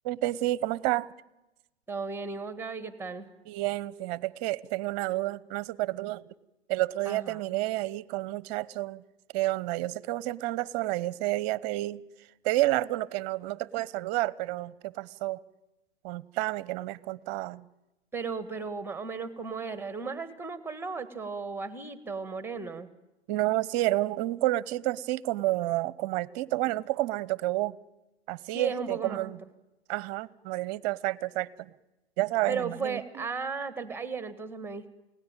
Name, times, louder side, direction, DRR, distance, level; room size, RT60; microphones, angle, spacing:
voice 1, 0.0-1.1 3.5-6.2 6.7-9.0 9.3-12.0 12.4-15.4 16.0-17.6 23.3-27.8 28.3-29.4 29.9-31.7 32.2-33.0, right 17 dB, 40° right, 0.9 m, -30 dB
voice 2, 1.9-3.3 7.0-7.4 18.1-22.9 28.5-29.3 32.5-34.9, right 5 dB, 5° right, 1.7 m, -35 dB
29.0 x 17.5 x 9.0 m
hypercardioid pair, 110°, 32 cm